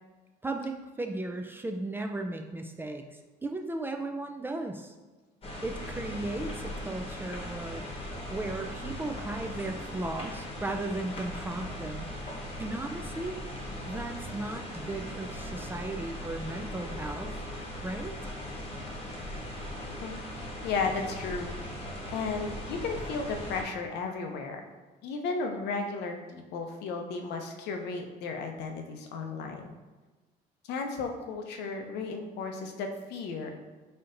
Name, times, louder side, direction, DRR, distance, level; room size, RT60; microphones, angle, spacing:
voice 1, 0.4-4.9 5.6-7.9 8.3-12.1 12.6-13.4 13.9-17.3 17.8-18.1, right 2 dB, 10° right, 4 dB, 0.3 m, -36 dB
sound 1, 5.4-23.6, left 1 dB, 35° left, 1.0 m, -39 dB
voice 2, 20.6-21.5 22.1-24.6 25.0-29.7 30.7-33.6, left 4 dB, 80° left, 4 dB, 0.6 m, -34 dB
4.3 x 3.9 x 2.5 m, 1.3 s
cardioid pair, 110°, 17 cm